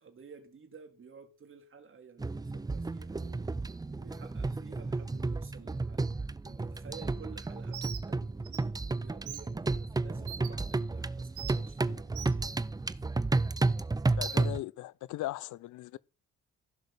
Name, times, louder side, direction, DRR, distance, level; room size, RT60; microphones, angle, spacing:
voice 1, 0.0-3.6 4.0-6.1 6.5-12.6, right 5 dB, 45° right, 2.7 m, -53 dB
sound 1, 2.2-14.6, right 3 dB, 15° right, 0.6 m, -32 dB
Bird, 7.7-8.0 8.4-8.6 9.3-9.4 10.3-10.5 11.4-11.5 12.1-12.3, right 11 dB, 80° right, 1.6 m, -41 dB
voice 2, 14.2-16.0, left 16 dB, 80° left, 0.6 m, -38 dB
15.0 x 6.4 x 6.7 m
cardioid pair, 90°, 30 cm